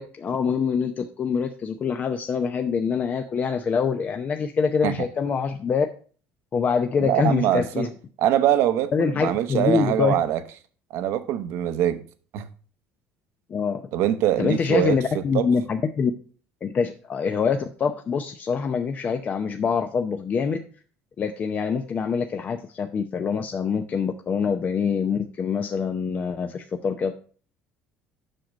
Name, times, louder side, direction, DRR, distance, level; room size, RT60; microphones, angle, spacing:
voice 1, 0.0-5.9 6.5-7.9 8.9-10.1 13.5-13.9 14.4-16.1 16.6-20.6 21.2-27.1, left 6 dB, 35° left, 0.7 m, -25 dB
voice 2, 7.0-7.9 8.2-10.4 10.9-12.0 12.3-12.5 13.9-15.0 15.3-15.5, right 11 dB, 70° right, 0.9 m, -23 dB
7.7 x 6.0 x 5.1 m
cardioid pair, 110°, 5 cm